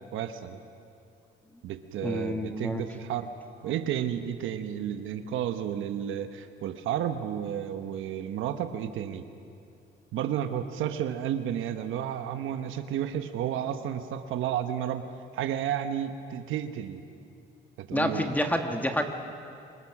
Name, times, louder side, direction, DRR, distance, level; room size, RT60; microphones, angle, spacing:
voice 1, 0.1-0.6 1.6-3.3 3.6-9.2 10.1-15.1 15.3-17.0 17.8-18.3, right 10 dB, 85° right, 8 dB, 1.1 m, -32 dB
voice 2, 2.0-2.8 17.9-19.0, equal, 10° left, 4 dB, 1.6 m, -28 dB
26.0 x 21.5 x 6.0 m, 2.5 s
cardioid pair, 90°, 20 cm